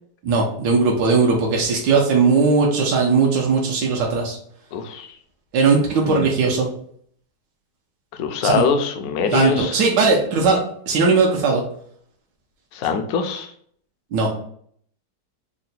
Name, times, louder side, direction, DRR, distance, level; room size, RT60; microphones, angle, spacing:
voice 1, 0.2-4.4 5.5-6.7 8.4-8.6 9.3-11.6 14.1-14.3, right 4 dB, 80° right, 0 dB, 1.3 m, -18 dB
voice 2, 4.7-5.1 6.0-6.3 8.2-9.8 12.7-13.5, left 6 dB, 70° left, 6 dB, 0.9 m, -23 dB
3.8 x 2.2 x 4.0 m, 0.63 s
omnidirectional pair, 1.8 m